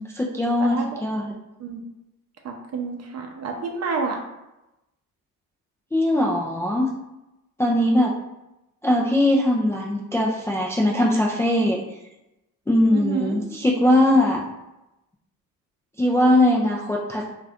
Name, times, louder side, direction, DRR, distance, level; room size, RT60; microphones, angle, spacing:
voice 1, 0.0-1.3 5.9-6.9 7.6-8.1 8.8-11.8 12.7-14.4 16.0-17.3, left 1 dB, 10° left, -3 dB, 0.3 m, -20 dB
voice 2, 0.6-1.0 1.6-1.8 2.4-4.2 12.9-13.4, right 5 dB, 40° right, 3 dB, 0.7 m, -29 dB
2.5 x 2.4 x 3.4 m, 0.94 s
supercardioid pair, 80°, 38 cm